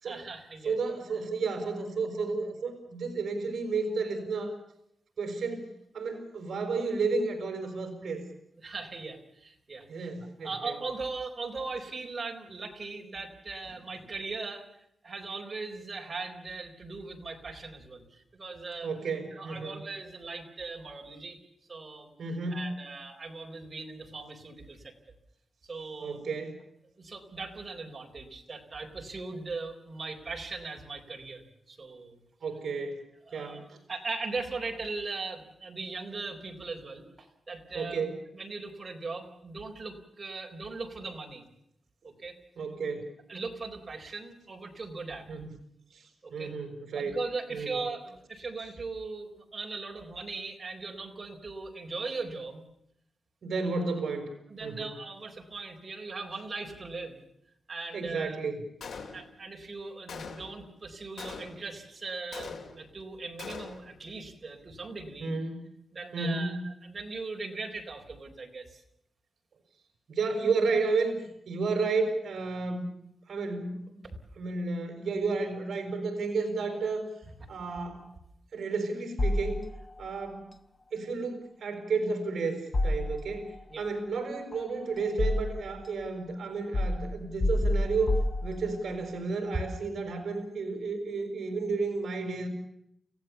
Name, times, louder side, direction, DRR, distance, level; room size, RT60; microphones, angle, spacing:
voice 1, 0.0-0.7 8.6-10.1 10.4-14.7 15.0-18.9 19.3-21.4 21.7-22.1 22.5-25.2 25.7-26.2 27.0-32.2 33.3-33.6 33.9-38.0 38.3-41.4 42.0-42.4 43.3-45.3 46.2-46.5 47.0-52.6 54.5-57.2 57.7-58.4 59.1-65.3 65.9-68.8 74.0-74.2 83.7-83.9, right 3 dB, 25° right, 1 dB, 4.2 m, -39 dB
voice 2, 0.6-4.6 5.2-8.2 9.9-10.7 18.8-19.8 22.2-22.7 26.0-26.6 32.4-33.0 33.3-33.8 37.7-38.2 42.6-43.1 45.3-45.5 45.9-47.2 47.5-47.8 53.4-54.3 54.6-54.9 57.9-58.7 65.2-65.6 66.1-66.6 70.1-72.9 73.3-74.0 74.4-77.1 77.5-78.0 78.5-79.6 80.0-80.5 80.9-92.5, right 4 dB, 55° right, 5 dB, 5.9 m, -32 dB
Gunshot gunfire, 58.8-59.5 60.1-60.7 61.2-61.8 62.3-63.0 63.4-64.0, left 5 dB, 75° left, 3.1 m, -42 dB
sound 1, 79.2-80.1 82.7-83.6 84.5-85.8 86.7-89.0, left 1 dB, 25° left, 1.1 m, -29 dB
30.0 x 16.5 x 7.0 m, 0.74 s
wide cardioid pair, 170°, 0 cm